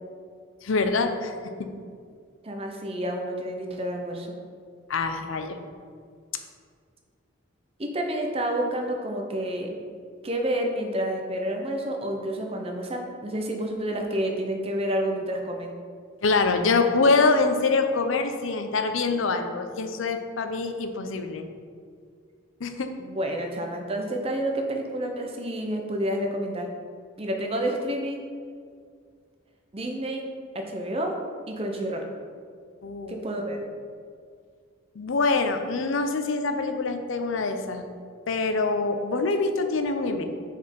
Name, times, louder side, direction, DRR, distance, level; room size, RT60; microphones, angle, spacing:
voice 1, 0.6-1.3 1.6-1.7 4.9-5.6 16.2-21.4 22.6-22.9 32.8-33.2 35.0-37.9 38.3-40.2, left 3 dB, 70° left, 7 dB, 0.5 m, -25 dB
voice 2, 2.4-4.4 7.8-9.8 10.2-15.7 18.4-18.5 23.0-26.7 27.2-28.2 29.7-30.2 30.5-31.2 31.5-32.1 33.1-33.7, right 1 dB, 30° right, 2 dB, 0.7 m, -29 dB
5.1 x 4.3 x 5.3 m, 2.1 s
head